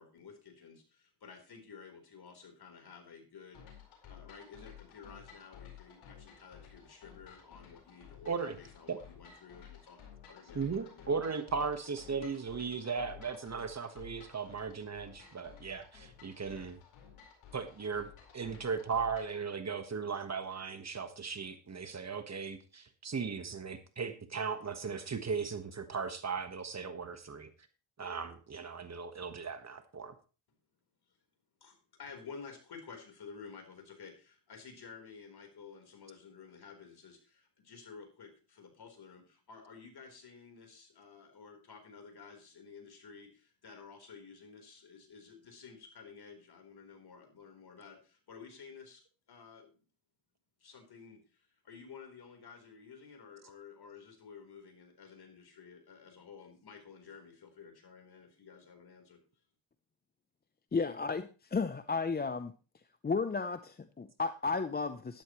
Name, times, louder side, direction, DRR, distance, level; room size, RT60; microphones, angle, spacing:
voice 1, 0.0-3.8 4.1-10.0 10.3-11.1 31.6-49.0 49.3-49.7 50.6-59.2, left 5 dB, 50° left, 4 dB, 4.2 m, -52 dB
sound 1, 3.5-19.4, left 8 dB, 80° left, 4.5 m, -54 dB
voice 2, 8.2-8.6 8.9-9.0 10.5-16.8 17.5-18.1 18.3-27.5 28.0-30.1, right 5 dB, 35° right, 9 dB, 1.4 m, -37 dB
voice 3, 60.7-62.5 63.0-65.2, left 4 dB, 20° left, 11 dB, 0.6 m, -33 dB
12.0 x 12.0 x 3.1 m, 0.35 s
cardioid pair, 80°, 48 cm